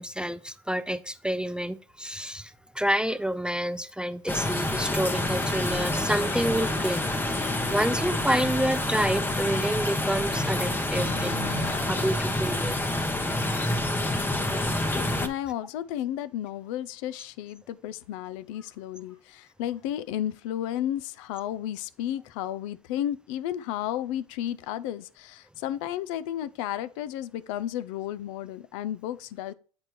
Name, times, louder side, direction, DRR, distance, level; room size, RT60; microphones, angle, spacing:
voice 1, 0.0-7.0 7.4-12.8, right 1 dB, 5° right, 0.3 m, -29 dB
sound 1, 1.5-1.6 2.1-2.2 2.6-2.7 3.6-3.7 4.3-4.6 4.8-4.9 5.3-5.7 7.1-7.2 7.5-7.6 9.9-10.0 10.3-12.0 12.4-12.5 12.8-12.9 13.3-13.4 13.7-13.8 16.6-16.7 17.1-17.2 18.0-18.1 18.5-18.7 19.0-19.8 20.1-20.2, left 4 dB, 90° left, 2.1 m, -42 dB
sound 2, 4.3-15.3, left 1 dB, 10° left, 0.8 m, -27 dB
voice 2, 15.2-29.5, left 11 dB, 65° left, 0.5 m, -33 dB
7.8 x 4.3 x 3.1 m
hypercardioid pair, 80°, 17 cm